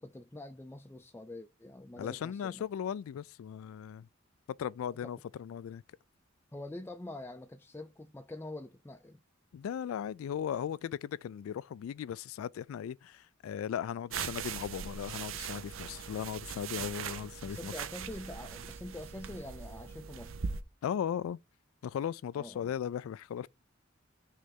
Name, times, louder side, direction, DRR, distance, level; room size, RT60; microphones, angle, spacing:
voice 1, 0.0-2.7 6.5-9.2 17.4-20.4 22.3-22.7, left 1 dB, 10° left, 0.4 m, -45 dB
voice 2, 2.0-4.1 4.6-5.8 9.5-17.7 20.8-21.4 21.8-23.5, left 8 dB, 85° left, 0.3 m, -37 dB
sound 1, 14.1-20.6, right 6 dB, 75° right, 0.6 m, -40 dB
6.3 x 3.3 x 5.3 m
head